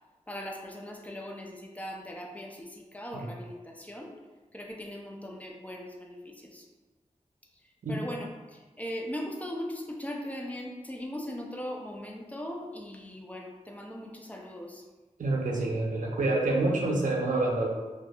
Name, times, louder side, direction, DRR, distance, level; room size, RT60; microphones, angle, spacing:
voice 1, 0.3-4.1 4.5-6.6 7.9-8.3 8.8-14.8, left 1 dB, 10° left, 0 dB, 0.4 m, -39 dB
voice 2, 15.2-17.7, right 2 dB, 80° right, -2 dB, 0.5 m, -27 dB
2.6 x 2.3 x 2.3 m, 1.2 s
wide cardioid pair, 55°, 13 cm